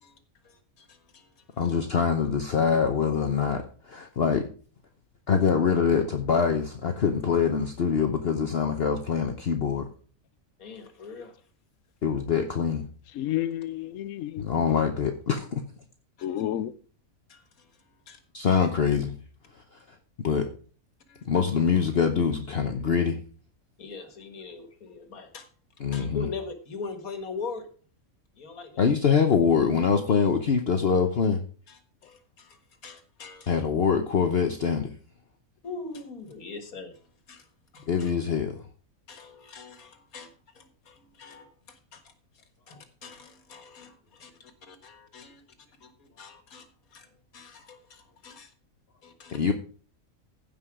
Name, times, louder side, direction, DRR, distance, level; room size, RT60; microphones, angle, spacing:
voice 1, 0.4-1.3 10.6-11.3 16.2-16.5 17.3-17.8 18.1-18.2 21.1-21.3 23.8-25.5 25.9-27.7 28.4-28.9 31.7-33.6 35.6-37.5 37.7-38.1 39.1-42.1 42.7-45.4 45.8-47.1 47.3-48.5 49.0-49.4, left 4 dB, 85° left, 2.0 m, -42 dB
voice 2, 1.6-4.5 5.3-9.9 12.0-12.9 14.4-15.6 18.3-19.1 20.2-20.5 21.3-23.2 25.8-26.3 28.8-31.4 33.5-34.9 37.9-38.6 49.3-49.5, left 6 dB, 50° left, 1.1 m, -24 dB
voice 3, 13.2-14.7 16.2-16.7, left 12 dB, 70° left, 1.0 m, -31 dB
16.0 x 5.4 x 4.9 m
omnidirectional pair, 1.5 m